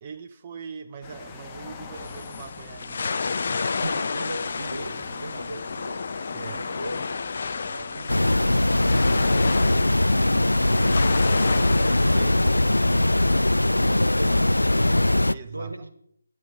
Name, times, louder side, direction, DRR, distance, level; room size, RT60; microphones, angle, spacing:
voice 1, 0.0-3.2 6.3-6.6 12.1-13.1 15.3-15.9, right 6 dB, 25° right, 8 dB, 0.5 m, -41 dB
sound 1, 1.0-10.7, left 4 dB, 20° left, 1.0 m, -44 dB
sound 2, 1.9-13.4, left 4 dB, 45° left, 0.6 m, -31 dB
voice 2, 3.8-6.0 6.5-7.1 7.7-9.9 10.5-12.5 13.3-15.9, right 1 dB, 80° right, 9 dB, 1.4 m, -37 dB
sound 3, 8.1-15.3, left 1 dB, 80° left, 0.3 m, -21 dB
10.5 x 9.6 x 3.9 m, 0.70 s
figure-of-eight pair, 150°, 0 cm